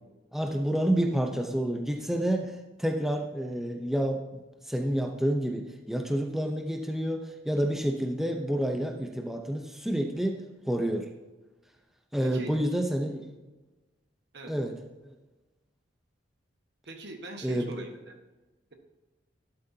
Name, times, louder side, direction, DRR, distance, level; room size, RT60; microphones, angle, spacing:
voice 1, 0.3-10.4 10.7-11.1 12.1-13.3 14.5-14.7 17.4-17.7, equal, ahead, 3 dB, 0.7 m, -29 dB
voice 2, 12.2-12.5 14.3-14.5 16.8-18.2, right 2 dB, 60° right, 4 dB, 1.5 m, -42 dB
12.5 x 11.5 x 2.8 m, 1.1 s
head